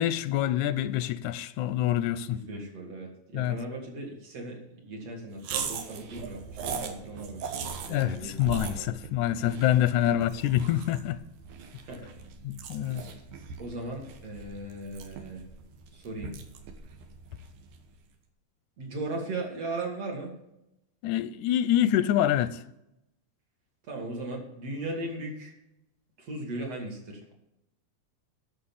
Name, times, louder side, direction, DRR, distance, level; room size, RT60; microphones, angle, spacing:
voice 1, 0.0-2.4 3.3-3.6 7.9-11.2 12.4-13.0 21.0-22.6, left 12 dB, 85° left, 2.0 m, -26 dB
voice 2, 2.3-8.4 8.6-8.9 10.0-10.2 11.8-12.1 12.9-13.2 13.6-15.4 15.9-16.3 18.8-20.3 23.9-25.5 26.2-27.3, right 2 dB, 55° right, 3.5 m, -38 dB
sound 1, 5.4-17.9, right 6 dB, 80° right, 2.6 m, -40 dB
11.5 x 6.5 x 7.2 m
omnidirectional pair, 3.4 m